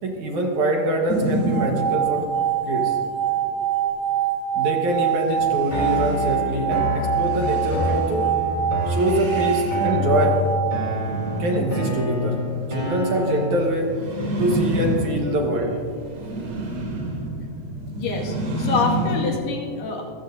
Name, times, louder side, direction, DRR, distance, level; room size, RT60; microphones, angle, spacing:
voice 1, 0.0-2.3 2.7-3.0 4.5-8.3 8.9-10.4 11.4-13.9 14.4-15.8, right 1 dB, 60° right, 1 dB, 2.4 m, -24 dB
sound 1, 1.1-2.4 5.0-19.4, right 1 dB, 75° right, 4.9 m, -30 dB
sound 2, 1.4-11.5, right 9 dB, 35° right, 1.8 m, -25 dB
sound 3, 5.7-13.7, left 1 dB, 10° right, 3.3 m, -27 dB
voice 2, 18.0-20.0, left 4 dB, 80° left, 0 dB, 3.9 m, -26 dB
25.0 x 15.0 x 2.7 m, 2.1 s
omnidirectional pair, 4.5 m